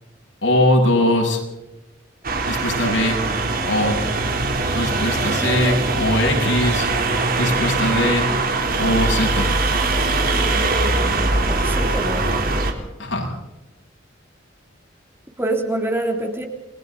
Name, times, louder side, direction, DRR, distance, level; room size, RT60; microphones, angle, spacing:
voice 1, 0.4-1.4 2.5-3.2 3.7-4.0 4.7-6.9 7.4-8.3 8.8-9.5 13.0-13.3, left 1 dB, 75° left, 0 dB, 7.8 m, -20 dB
sound 1, 2.2-12.7, right 3 dB, 50° right, 3.6 m, -21 dB
voice 2, 11.5-12.3 15.4-16.5, right 1 dB, 10° right, 3 dB, 3.2 m, -25 dB
30.0 x 22.0 x 4.1 m, 0.99 s
head